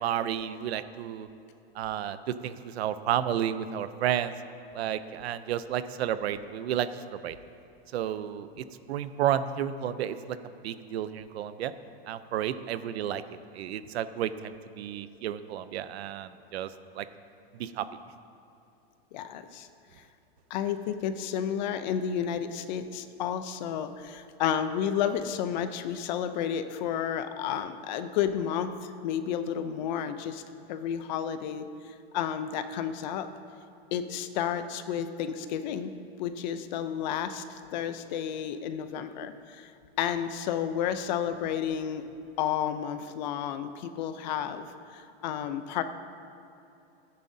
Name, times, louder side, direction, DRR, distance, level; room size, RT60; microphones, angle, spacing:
voice 1, 0.0-1.3 1.7-4.3 4.7-7.4 7.9-10.4 10.6-11.7 12.1-13.2 13.5-16.7 17.0-17.1 17.5-17.9, right 10 dB, 85° right, 13 dB, 0.6 m, -31 dB
voice 2, 19.1-19.7 20.5-30.4 30.7-33.3 33.9-35.9 36.2-39.7 40.0-42.1 42.4-45.8, left 9 dB, 45° left, 10 dB, 0.6 m, -31 dB
14.5 x 9.8 x 2.7 m, 2.8 s
supercardioid pair, 160°, 31 cm